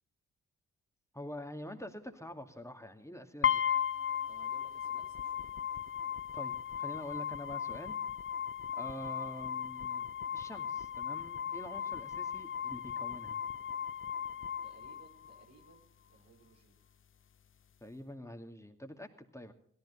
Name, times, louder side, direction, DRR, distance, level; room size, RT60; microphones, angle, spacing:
voice 1, 1.1-3.6 6.3-8.0 8.7-10.0 10.3-13.4 17.8-19.5, left 1 dB, 10° left, 4 dB, 2.4 m, -46 dB
sound 1, 3.4-15.4, left 8 dB, 40° left, 0.6 m, -36 dB
voice 2, 4.3-5.8 14.6-16.8, right 3 dB, 85° right, 0 dB, 4.0 m, -62 dB
17.5 x 14.0 x 4.2 m, 0.63 s
supercardioid pair, 40°, 33 cm